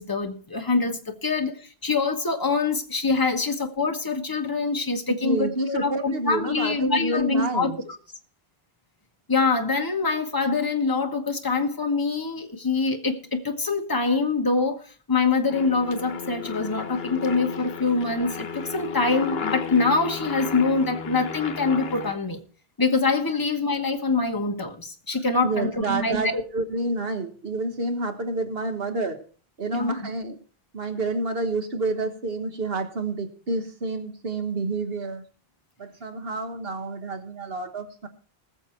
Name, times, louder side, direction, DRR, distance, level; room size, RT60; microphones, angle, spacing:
voice 1, 0.0-8.0 9.3-22.4 22.8-26.3 29.7-29.9, left 4 dB, 20° left, 1.3 m, -25 dB
voice 2, 5.1-7.8 25.4-29.2 29.6-30.4 30.7-35.2 35.8-38.1, right 2 dB, 70° right, 1.6 m, -29 dB
Aircraft, 15.5-22.1, left 6 dB, 75° left, 1.2 m, -33 dB
20.0 x 7.1 x 4.5 m
omnidirectional pair, 1.0 m